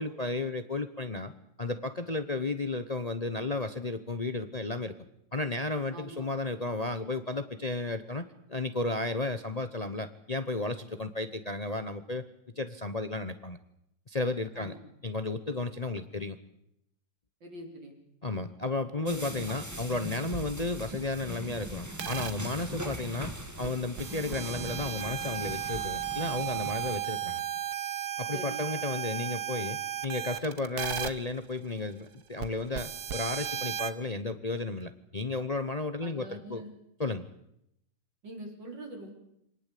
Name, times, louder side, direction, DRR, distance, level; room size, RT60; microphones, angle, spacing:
voice 1, 0.0-1.3 1.6-4.9 5.3-12.2 12.6-13.6 14.1-14.7 15.0-16.4 18.2-23.3 23.6-27.4 28.2-36.6 37.0-37.2, left 2 dB, 30° left, 11 dB, 0.8 m, -33 dB
voice 2, 5.9-6.3 14.6-14.8 15.9-16.0 17.4-17.9 18.9-19.3 27.3-27.4 28.3-28.7 36.0-36.7 38.2-39.1, right 1 dB, 85° right, 2 dB, 5.5 m, -44 dB
sound 1, 19.1-27.0, right 1 dB, 10° right, 2.2 m, -41 dB
sound 2, 22.0-22.3 23.6-23.7 24.0-31.1 32.4-32.5 32.7-33.9, right 10 dB, 60° right, 1.7 m, -35 dB
25.5 x 18.5 x 8.4 m, 0.78 s
omnidirectional pair, 1.9 m